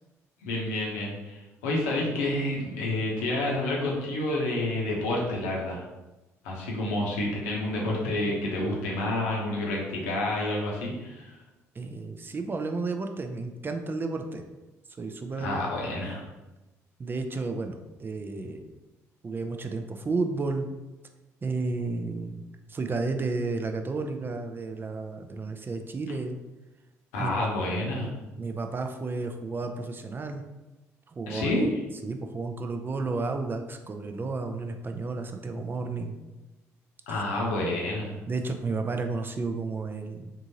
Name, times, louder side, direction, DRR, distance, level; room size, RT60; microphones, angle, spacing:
voice 1, 0.4-5.8 6.4-11.3 15.4-16.2 27.1-28.1 31.3-31.7 37.1-38.1, left 1 dB, 80° left, -3 dB, 0.8 m, -29 dB
voice 2, 11.7-14.4 15.0-15.6 17.0-18.6 19.2-20.7 21.4-22.4 22.7-26.4 27.2-27.5 27.9-28.1 28.4-30.4 31.1-31.6 32.0-36.2 37.1-37.2 38.3-40.3, right 3 dB, 30° right, 5 dB, 0.4 m, -32 dB
3.6 x 2.5 x 2.8 m, 1.1 s
hypercardioid pair, 50°, 8 cm